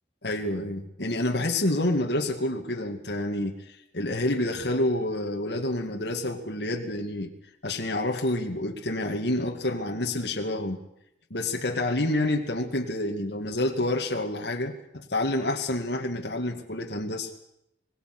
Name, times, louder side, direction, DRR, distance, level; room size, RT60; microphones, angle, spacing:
voice 1, 0.2-7.3 7.6-10.8 11.3-17.3, left 1 dB, 65° left, 2 dB, 2.2 m, -28 dB
25.5 x 20.0 x 6.2 m, 0.78 s
head